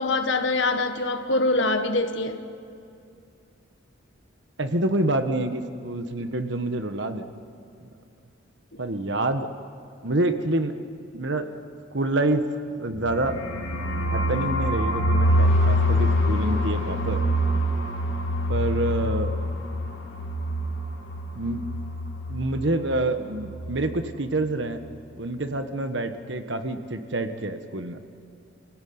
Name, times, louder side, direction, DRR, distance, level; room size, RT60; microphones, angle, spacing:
voice 1, 0.0-2.4, left 2 dB, 65° left, 7 dB, 1.7 m, -24 dB
voice 2, 4.6-7.3 7.8-7.9 8.8-9.5 10.0-10.7 11.1-11.5 11.9-12.4 12.8-13.4 13.8-17.2 18.5-19.3 21.3-21.7 22.3-24.8 25.2-28.0, right 2 dB, 60° right, 8 dB, 1.4 m, -27 dB
sound 1, 13.0-22.7 22.9-23.1 23.3-23.8, equal, 85° left, 3.3 m, -25 dB
28.5 x 17.0 x 9.5 m, 2.5 s
head